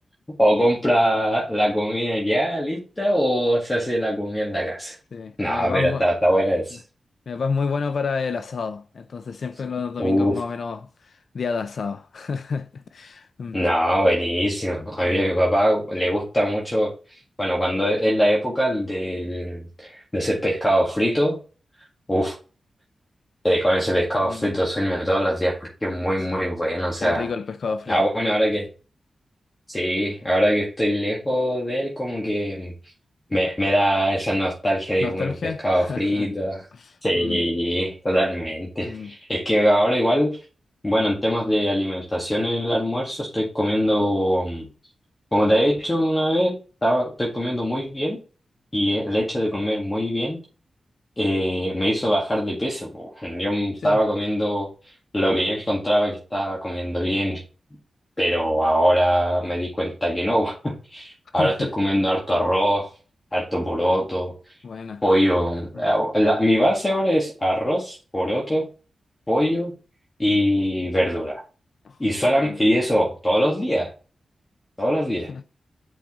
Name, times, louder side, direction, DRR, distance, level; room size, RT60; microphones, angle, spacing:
voice 1, 0.4-4.9 5.4-6.8 10.0-10.3 13.5-16.9 17.4-21.4 22.1-22.3 23.4-27.3 27.9-28.7 29.7-32.7 33.3-36.6 37.0-40.3 40.8-44.7 45.3-46.5 46.8-48.2 48.7-50.4 51.2-54.7 55.1-57.4 58.2-62.9 63.3-64.3 65.0-68.6 69.3-69.7 70.2-71.4 72.0-73.9 74.8-75.3, equal, 15° left, 1.8 m, -22 dB
voice 2, 5.1-6.0 7.3-13.6 15.0-15.2 24.3-24.5 27.0-28.1 35.0-36.3 36.7-37.4 38.8-39.1 53.8-54.0 61.4-61.7 64.6-65.0 65.7-65.8 71.8-72.0 72.3-72.6 75.3-75.4, left 5 dB, 60° left, 0.5 m, -30 dB
7.8 x 5.3 x 3.7 m
wide cardioid pair, 150°, 0 cm